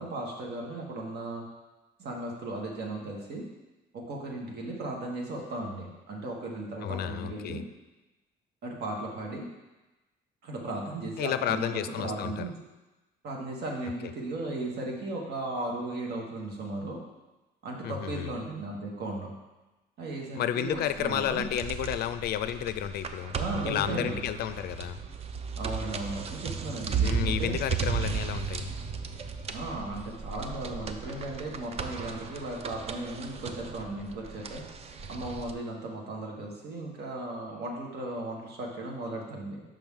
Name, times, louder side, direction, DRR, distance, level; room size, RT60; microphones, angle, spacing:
voice 1, 0.0-1.4 2.0-3.5 3.9-7.6 8.6-9.5 10.4-12.5 13.2-17.0 17.6-19.3 20.0-21.5 23.3-24.2 25.6-27.6 29.5-34.6 35.1-39.6, right 2 dB, 65° right, -1 dB, 1.4 m, -36 dB
voice 2, 6.8-7.6 11.2-12.4 17.8-18.3 20.3-23.4 23.7-25.0 27.0-28.7, left 10 dB, 65° left, 11 dB, 0.4 m, -31 dB
sound 1, 20.7-35.5, right 6 dB, 35° right, 0.4 m, -35 dB
6.0 x 5.5 x 3.6 m, 1.1 s
cardioid pair, 120°, 18 cm